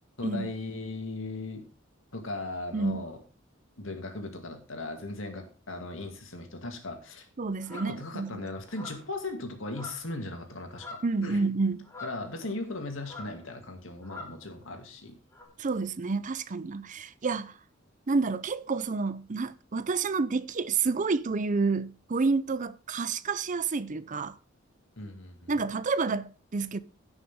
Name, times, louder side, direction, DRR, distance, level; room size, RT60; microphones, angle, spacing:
voice 1, 0.2-1.6 2.1-3.2 3.8-7.3 7.7-11.4 12.0-15.2 25.0-25.5, left 2 dB, 75° left, 2.4 m, -38 dB
voice 2, 2.7-3.0 7.4-8.4 11.0-11.8 15.6-17.5 18.1-24.4 25.5-26.8, right 4 dB, 40° right, 0.5 m, -29 dB
sound 1, 7.6-8.0 8.7-9.2 9.7-10.2 10.5-11.2 11.8-12.7 13.0-13.4 14.0-14.4 15.3-15.4, left 2 dB, 15° left, 2.6 m, -45 dB
16.5 x 6.3 x 3.6 m
head